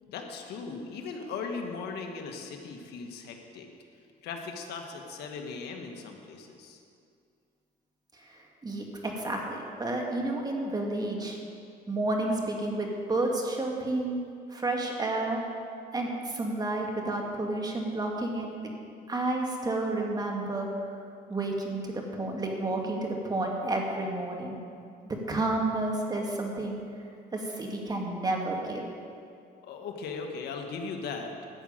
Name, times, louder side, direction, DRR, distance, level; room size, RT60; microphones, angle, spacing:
voice 1, 0.1-3.7 4.2-6.8 29.6-31.3, left 4 dB, 75° left, 3 dB, 1.4 m, -38 dB
voice 2, 8.2-11.4 11.9-14.2 14.5-15.4 15.9-18.5 19.1-20.7 21.3-24.6 25.1-26.9 27.3-28.9, right 2 dB, 25° right, 0 dB, 1.9 m, -31 dB
12.0 x 6.3 x 8.8 m, 2.4 s
cardioid pair, 110°, 17 cm